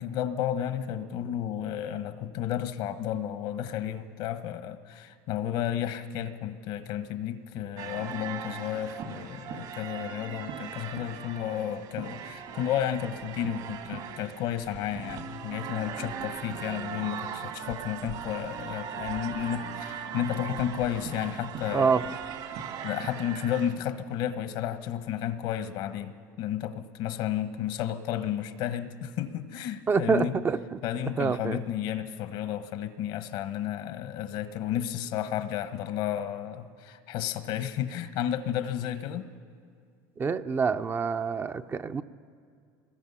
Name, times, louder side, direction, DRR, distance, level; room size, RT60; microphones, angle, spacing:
voice 1, 0.0-22.1 22.8-30.4 30.8-39.3, left 10 dB, 70° left, 11 dB, 1.2 m, -32 dB
sound 1, 7.8-23.7, right 8 dB, 60° right, 2.1 m, -39 dB
voice 2, 21.7-22.1 29.9-30.8 31.2-31.6 40.2-42.0, right 5 dB, 25° right, 9 dB, 0.6 m, -26 dB
24.0 x 20.0 x 5.6 m, 2.3 s
supercardioid pair, 110°, 9 cm